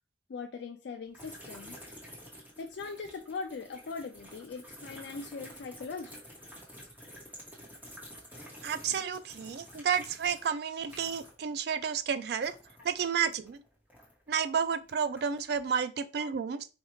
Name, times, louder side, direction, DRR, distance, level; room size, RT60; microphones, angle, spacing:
voice 1, 0.3-1.8 2.6-6.2 12.8-12.9 16.2-16.3, left 4 dB, 65° left, 0.3 m, -41 dB
sound 1, 1.1-11.5 11.8-14.3 14.8-15.6, equal, 10° right, 1.1 m, -50 dB
voice 2, 8.6-12.5 12.8-13.6 14.3-16.7, right 7 dB, 55° right, 0.3 m, -31 dB
4.4 x 2.4 x 3.0 m
head